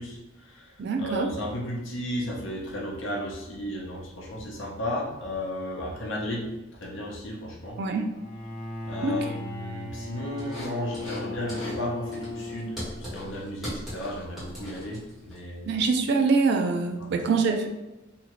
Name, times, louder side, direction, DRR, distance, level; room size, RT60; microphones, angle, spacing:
voice 1, 0.0-6.5 6.8-7.8 8.8-15.8 17.0-17.1, left 1 dB, 65° left, -2 dB, 0.7 m, -34 dB
voice 2, 0.8-1.3 7.8-8.1 9.0-9.2 15.6-17.7, right 4 dB, 55° right, 5 dB, 0.3 m, -24 dB
Bowed string instrument, 8.1-13.4, left 2 dB, 25° left, 0.7 m, -37 dB
sound 1, 10.4-11.2 11.5-11.8 12.1-15.4, equal, ahead, 1.2 m, -39 dB
2.8 x 2.4 x 2.9 m, 1.0 s
head